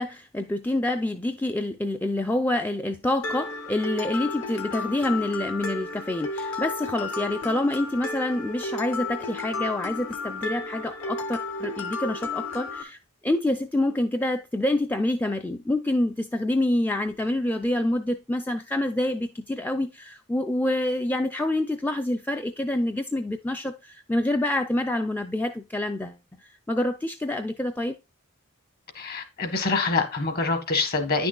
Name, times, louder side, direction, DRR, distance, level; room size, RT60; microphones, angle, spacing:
voice 1, 0.0-27.9, left 1 dB, 10° left, 0.3 m, -27 dB
Mallet percussion, 3.2-12.8, left 3 dB, 65° left, 1.1 m, -33 dB
voice 2, 28.9-31.3, left 3 dB, 45° left, 1.3 m, -25 dB
9.9 x 6.0 x 2.3 m
head